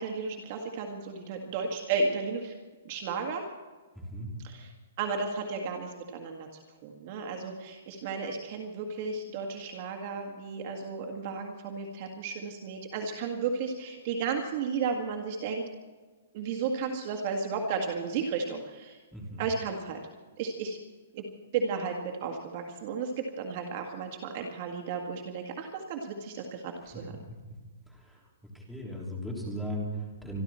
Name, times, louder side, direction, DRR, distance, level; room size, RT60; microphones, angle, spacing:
voice 1, 0.0-2.5 2.9-3.4 4.4-4.7 5.0-6.5 6.8-15.6 16.3-19.0 19.4-20.0 20.4-20.8 21.1-21.2 21.5-27.2, right 5 dB, 35° right, 2 dB, 1.8 m, -33 dB
voice 2, 4.0-4.3 19.1-19.4 27.9-28.2 28.5-30.4, equal, ahead, -3 dB, 3.5 m, -37 dB
25.5 x 12.0 x 4.4 m, 1.3 s
hypercardioid pair, 165°, 0 cm